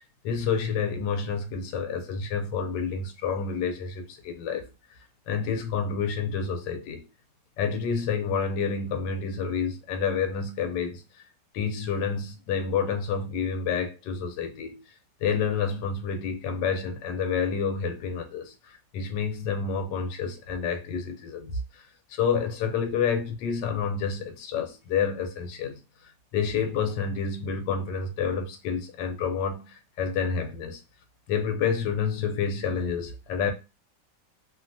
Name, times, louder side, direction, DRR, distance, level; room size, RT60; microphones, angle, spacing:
voice 1, 0.2-4.7 5.3-7.0 7.6-11.0 11.5-14.8 15.2-21.8 22.1-25.8 26.3-30.8 31.3-33.5, left 6 dB, 80° left, 1.3 m, -29 dB
3.1 x 2.1 x 2.6 m
omnidirectional pair, 1.9 m